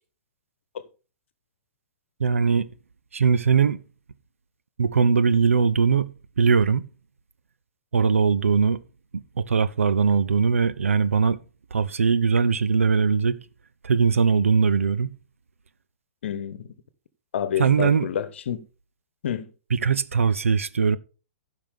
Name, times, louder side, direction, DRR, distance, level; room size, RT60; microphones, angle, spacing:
voice 1, 2.2-2.7 3.1-3.8 4.8-6.9 7.9-8.8 9.1-11.4 11.7-13.4 13.8-15.1 17.6-18.1 19.7-21.0, right 5 dB, 65° right, 0.7 m, -21 dB
voice 2, 16.2-16.7 17.3-18.6 19.2-19.5, left 9 dB, 55° left, 1.1 m, -28 dB
15.0 x 6.1 x 3.5 m
figure-of-eight pair, 115°, 8 cm